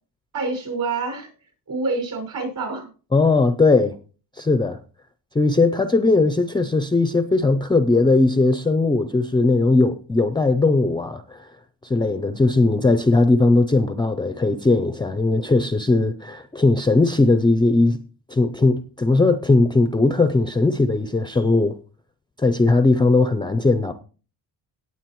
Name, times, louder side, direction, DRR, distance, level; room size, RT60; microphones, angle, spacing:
voice 1, 0.3-1.3 1.7-2.9, right 3 dB, 50° right, 5.8 m, -27 dB
voice 2, 3.1-4.0 4.4-4.8 5.3-11.5 11.8-18.0 18.3-21.8 22.4-23.9, left 3 dB, 10° left, 0.5 m, -19 dB
18.0 x 7.5 x 3.1 m
cardioid pair, 135°, 43 cm